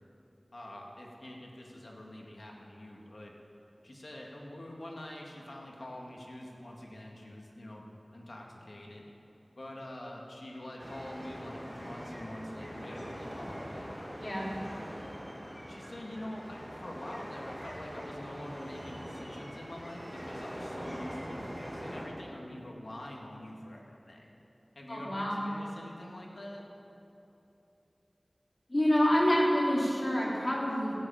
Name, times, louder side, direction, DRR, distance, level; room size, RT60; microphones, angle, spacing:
voice 1, 0.5-3.3 3.8-7.9 8.1-9.0 9.6-14.2 15.7-24.3 24.8-26.6, left 1 dB, 80° left, -1 dB, 2.1 m, -45 dB
sound 1, 10.8-22.0, equal, 5° right, 3.3 m, -43 dB
voice 2, 24.9-25.5 28.7-30.9, equal, 45° left, -5 dB, 3.7 m, -27 dB
15.0 x 8.1 x 9.0 m, 3.0 s
wide cardioid pair, 45°, 0 cm